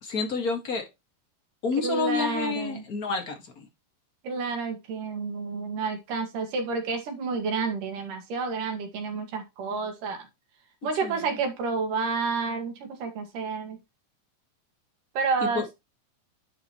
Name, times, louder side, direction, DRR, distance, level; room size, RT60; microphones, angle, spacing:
voice 1, 0.0-0.9 1.6-3.7 11.0-11.4 15.4-15.6, left 5 dB, 35° left, 1.7 m, -29 dB
voice 2, 1.8-2.8 4.2-10.3 10.8-13.8 15.2-15.7, right 4 dB, 75° right, 3.5 m, -30 dB
10.5 x 5.2 x 3.0 m
omnidirectional pair, 3.8 m